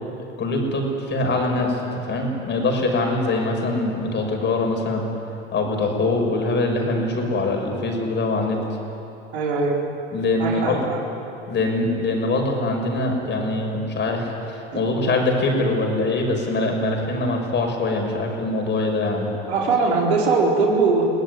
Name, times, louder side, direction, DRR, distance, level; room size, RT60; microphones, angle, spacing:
voice 1, 0.4-5.0 5.5-8.6 10.1-10.8 11.5-19.3, left 2 dB, 35° left, 2 dB, 6.0 m, -23 dB
voice 2, 9.3-9.8 10.4-11.0 14.7-14.8 19.5-21.0, right 4 dB, 90° right, -1 dB, 4.3 m, -21 dB
24.0 x 17.5 x 9.6 m, 3.0 s
hypercardioid pair, 90°, 32 cm